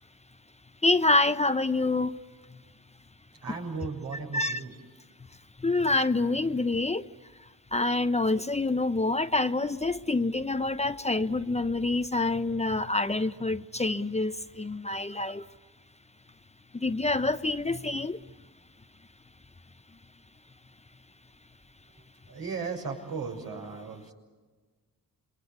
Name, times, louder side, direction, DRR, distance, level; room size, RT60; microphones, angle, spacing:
voice 1, 0.8-2.1 4.3-4.6 5.6-7.1 7.7-15.5 16.7-18.2, left 2 dB, 20° left, 11 dB, 0.8 m, -27 dB
voice 2, 3.4-4.8 21.9-24.1, right 5 dB, 75° right, 1 dB, 7.1 m, -36 dB
28.0 x 22.5 x 8.3 m, 1.4 s
cardioid pair, 70°, 36 cm